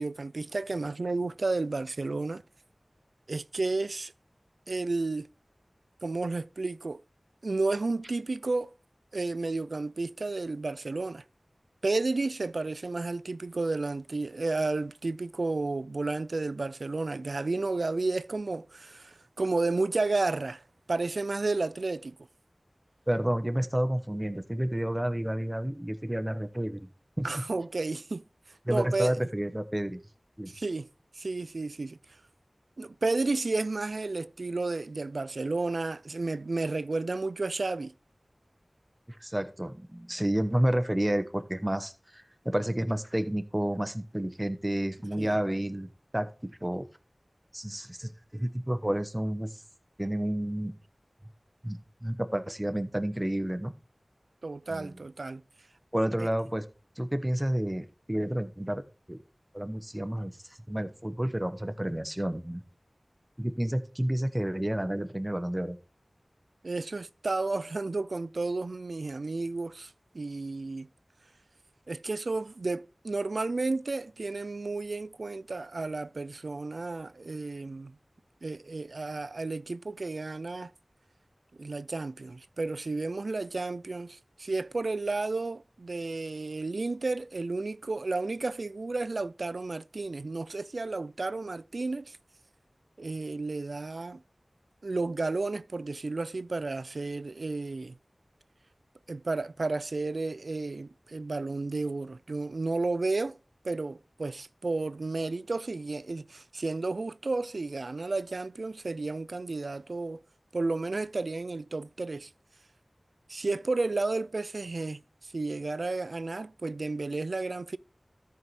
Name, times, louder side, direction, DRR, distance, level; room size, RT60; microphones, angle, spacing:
voice 1, 0.0-2.4 3.3-4.1 4.7-5.3 6.0-7.0 7.4-8.7 9.1-11.2 11.8-20.6 20.9-22.1 27.2-29.2 30.5-30.9 31.1-32.0 32.8-37.9 45.2-45.4 54.4-55.4 56.2-56.3 66.6-70.9 71.9-78.0 78.4-80.7 81.6-92.2 93.0-94.2 94.8-98.0 99.1-103.4 103.6-110.2 110.5-112.3 113.3-117.8, right 3 dB, 85° right, 0.3 m, -32 dB
voice 2, 23.1-26.8 27.2-27.4 28.6-30.0 30.4-30.5 39.2-45.9 46.1-46.9 47.5-49.5 50.0-50.7 51.6-53.7 54.7-54.9 55.9-56.6 57.0-58.8 59.1-59.2 59.5-60.3 60.7-62.6 63.4-65.8, right 1 dB, 15° right, 1.0 m, -30 dB
13.5 x 4.7 x 4.2 m
wide cardioid pair, 55°, 0 cm